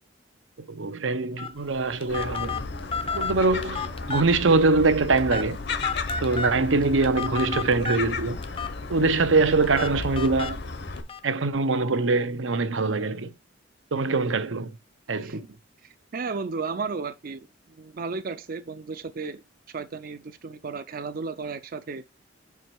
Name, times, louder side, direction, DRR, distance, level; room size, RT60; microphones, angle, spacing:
voice 1, 0.7-2.7 3.1-5.6 6.2-8.4 8.9-10.6 11.2-13.3 13.9-14.8 15.1-15.5, right 3 dB, 85° right, 0.8 m, -23 dB
Telephone, 1.4-11.2, left 5 dB, 30° left, 0.6 m, -34 dB
Gull seagull, 2.1-11.0, left 3 dB, 65° left, 1.0 m, -34 dB
voice 2, 15.8-19.4 19.7-22.0, right 4 dB, 50° right, 0.5 m, -34 dB
6.0 x 4.8 x 4.6 m
head